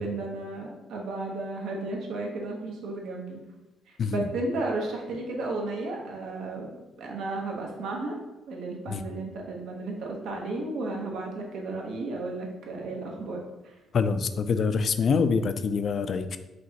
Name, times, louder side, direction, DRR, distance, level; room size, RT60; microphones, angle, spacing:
voice 1, 0.0-3.4 3.9-6.7 7.0-8.1 8.5-13.7, right 2 dB, 80° right, 0 dB, 0.9 m, -33 dB
voice 2, 13.9-16.4, left 5 dB, 55° left, 11 dB, 0.3 m, -25 dB
5.1 x 2.9 x 2.8 m, 1.0 s
cardioid pair, 90°, 0 cm